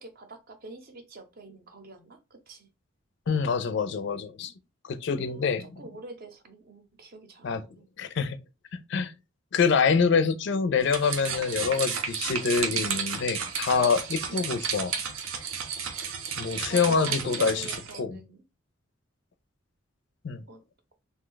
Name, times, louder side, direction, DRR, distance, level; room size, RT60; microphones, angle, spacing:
voice 1, 0.0-2.7 5.2-7.9 14.3-14.5 16.7-18.4 20.5-20.6, right 2 dB, 45° right, 0.6 m, -44 dB
voice 2, 3.3-4.5 4.8-5.8 7.4-7.6 8.0-8.4 8.7-9.1 9.5-14.9 16.4-17.7 18.0-18.2 20.2-20.4, left 5 dB, 60° left, 0.4 m, -26 dB
sound 1, 10.8-18.0, right 6 dB, 90° right, 0.6 m, -32 dB
2.7 x 2.2 x 3.8 m
head